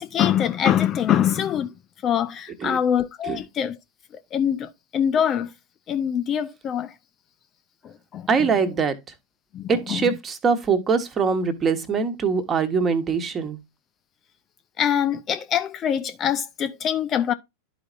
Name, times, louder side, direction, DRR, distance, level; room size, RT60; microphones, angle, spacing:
voice 1, 0.0-1.7 2.0-3.8 4.3-5.5 5.9-6.9 8.1-8.3 9.5-10.0 14.8-17.3, left 9 dB, 30° left, 0.5 m, -24 dB
voice 2, 8.3-9.0 9.7-13.6, right 5 dB, 25° right, 1.2 m, -23 dB
12.0 x 4.9 x 2.5 m
figure-of-eight pair, 90°, 0 cm